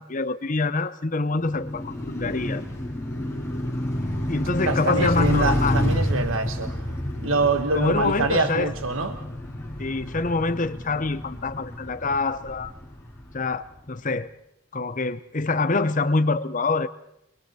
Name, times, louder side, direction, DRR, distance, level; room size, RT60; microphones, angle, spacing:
voice 1, 0.0-2.6 4.3-5.8 7.7-8.7 9.8-12.7 13.3-14.3 14.7-16.9, left 3 dB, 35° left, 14 dB, 0.8 m, -25 dB
Car passing by, 1.3-13.5, equal, 15° left, 5.2 m, -29 dB
voice 2, 4.7-6.9 7.2-9.2, right 3 dB, 70° right, 8 dB, 1.3 m, -25 dB
30.0 x 22.5 x 4.3 m, 0.81 s
head